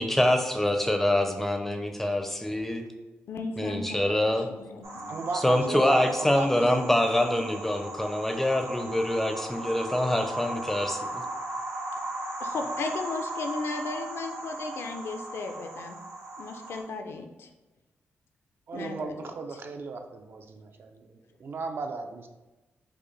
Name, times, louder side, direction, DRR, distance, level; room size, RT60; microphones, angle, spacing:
voice 1, 0.0-2.9 3.6-4.5 5.3-11.2, left 1 dB, 5° left, 5 dB, 0.4 m, -25 dB
voice 2, 3.3-5.2 12.4-16.0 16.4-17.5 18.7-19.2, left 3 dB, 70° left, 5 dB, 0.4 m, -36 dB
sound 1, 4.8-16.8, right 1 dB, 85° right, 0.8 m, -37 dB
voice 3, 5.1-6.8 18.7-22.3, right 4 dB, 55° right, 5 dB, 0.4 m, -36 dB
4.9 x 2.1 x 3.1 m, 1.1 s
cardioid pair, 105°, 4 cm